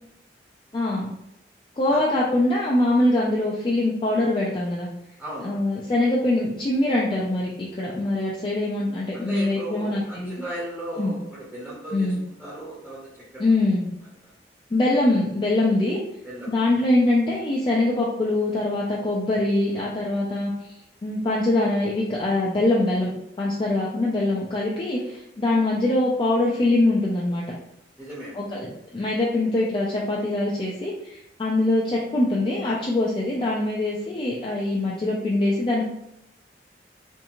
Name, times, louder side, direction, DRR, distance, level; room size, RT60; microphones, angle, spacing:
voice 1, 0.7-1.1 1.8-4.9 5.4-10.4 11.0-11.2 11.9-12.2 13.4-13.9 14.7-16.0 16.5-20.7 21.0-23.1 23.4-27.4 28.3-35.8, left 2 dB, 30° left, -5 dB, 0.3 m, -23 dB
voice 2, 5.2-5.6 9.1-11.2 11.5-13.7 14.2-14.3 16.2-16.5 28.0-28.4, right 1 dB, 5° right, -8 dB, 0.7 m, -36 dB
2.6 x 2.4 x 2.8 m, 0.82 s
head